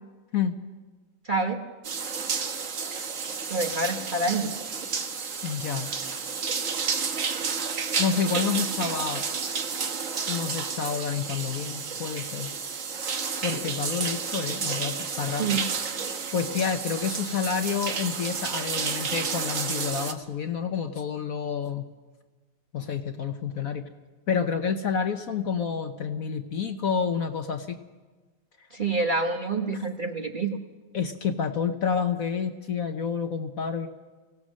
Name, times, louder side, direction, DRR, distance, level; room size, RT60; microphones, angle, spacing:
voice 1, 1.3-1.6 3.5-4.5 15.4-15.6 28.7-30.6, right 3 dB, 30° right, 3 dB, 1.1 m, -27 dB
sound 1, 1.8-20.1, right 5 dB, 50° right, 1.4 m, -31 dB
voice 2, 5.4-5.9 8.0-9.2 10.3-12.5 13.4-15.6 16.0-21.9 22.7-23.9 24.3-27.8 30.9-33.9, left 6 dB, 55° left, 7 dB, 1.2 m, -29 dB
23.5 x 17.0 x 6.3 m, 1.3 s
omnidirectional pair, 2.0 m